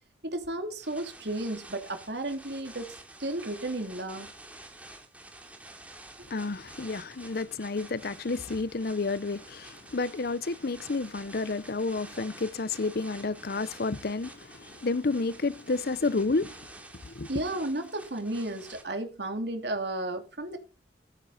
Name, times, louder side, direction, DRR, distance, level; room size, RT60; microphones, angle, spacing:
voice 1, 0.2-2.9 3.2-4.3 17.3-20.6, right 1 dB, 65° right, 2.9 m, -33 dB
sound 1, 0.8-18.8, right 2 dB, 10° right, 2.7 m, -49 dB
voice 2, 6.3-16.7 17.0-17.3, left 3 dB, 55° left, 0.7 m, -30 dB
13.5 x 13.5 x 4.2 m
head